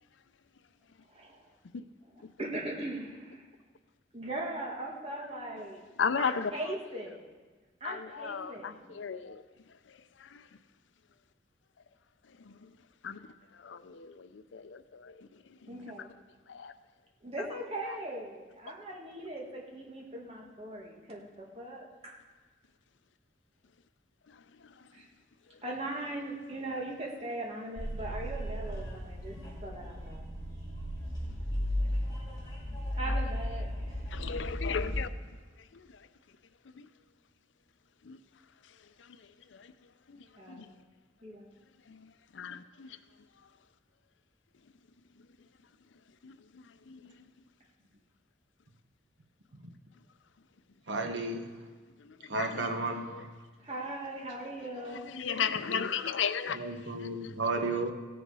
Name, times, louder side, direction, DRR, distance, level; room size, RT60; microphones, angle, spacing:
voice 1, 1.1-1.5 2.4-3.5 4.1-5.8 6.2-7.3 7.8-9.0 15.7-16.1 17.2-22.1 24.9-25.1 25.6-29.3 29.6-30.3 32.9-34.0 40.4-40.7 41.2-41.5 53.6-55.0, right 1 dB, 30° right, 1.7 m, -39 dB
voice 2, 6.0-6.6 7.8-9.4 9.9-10.5 12.4-12.7 13.0-13.2 13.5-15.9 16.5-16.7 24.3-24.9 33.1-33.2 34.1-35.1 35.6-36.1 36.6-36.9 38.0-38.2 39.0-39.7 40.1-40.7 41.9-43.0 46.2-47.3 52.0-52.7 53.1-53.2 55.0-56.6 57.0-57.1, left 6 dB, 90° left, 0.5 m, -37 dB
sound 1, 27.8-35.0, equal, 20° left, 4.2 m, -35 dB
voice 3, 50.9-51.6 52.2-53.3 56.5-57.9, right 2 dB, 80° right, 1.1 m, -33 dB
16.5 x 7.0 x 4.8 m
head